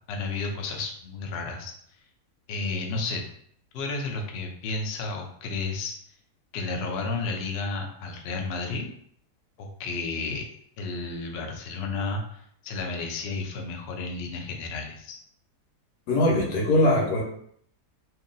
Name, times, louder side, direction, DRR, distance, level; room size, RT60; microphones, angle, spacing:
voice 1, 0.1-1.7 2.5-3.2 3.7-5.9 6.5-8.9 9.6-10.4 10.8-15.2, left 3 dB, 65° left, 2 dB, 0.6 m, -32 dB
voice 2, 16.1-17.2, left 1 dB, 80° left, -1 dB, 1.4 m, -21 dB
2.8 x 2.6 x 3.8 m, 0.65 s
omnidirectional pair, 1.7 m